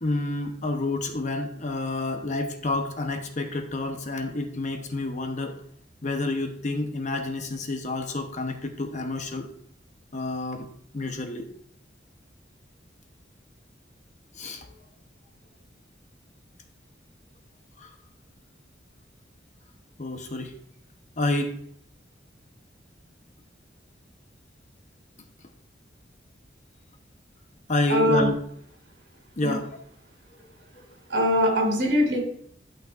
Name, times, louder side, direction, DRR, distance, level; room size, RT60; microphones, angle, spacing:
voice 1, 0.0-5.6 6.0-9.5 10.1-10.7 10.9-11.5 14.3-14.7 17.8-17.9 20.0-20.5 21.2-21.6 27.7-28.3 29.4-29.8, left 2 dB, 45° left, 5 dB, 0.9 m, -29 dB
voice 2, 27.9-28.3 29.4-29.6 31.1-32.2, equal, 75° right, 1 dB, 2.7 m, -22 dB
11.5 x 5.8 x 2.5 m, 0.64 s
head